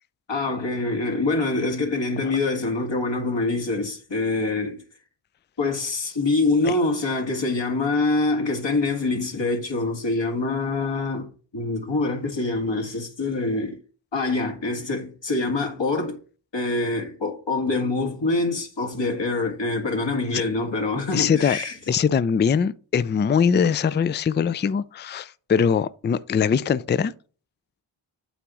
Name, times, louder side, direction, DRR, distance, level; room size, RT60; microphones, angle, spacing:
voice 1, 0.3-4.8 5.6-11.3 11.5-13.8 14.1-16.2 16.5-21.7, left 3 dB, 60° left, 1.8 m, -25 dB
voice 2, 21.1-21.6 21.9-27.1, left 7 dB, 25° left, 0.4 m, -22 dB
8.1 x 3.0 x 6.1 m
cardioid pair, 40°, 50 cm